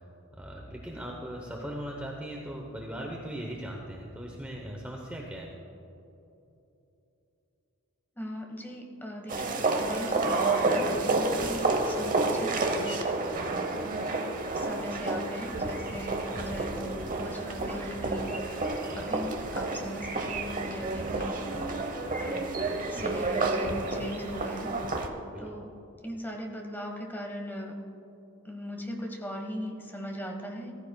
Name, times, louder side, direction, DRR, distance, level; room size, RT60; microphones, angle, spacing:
voice 1, 0.3-5.5 25.3-25.5, equal, 5° right, -1 dB, 0.8 m, -39 dB
voice 2, 8.1-13.0 13.5-13.8 14.5-21.6 22.2-22.5 22.9-25.1 25.4-25.7 26.0-27.8 28.4-30.7, equal, 10° left, 1 dB, 1.3 m, -39 dB
sound 1, 9.3-25.1, right 2 dB, 35° right, 0.9 m, -30 dB
15.0 x 14.5 x 2.3 m, 2.9 s
head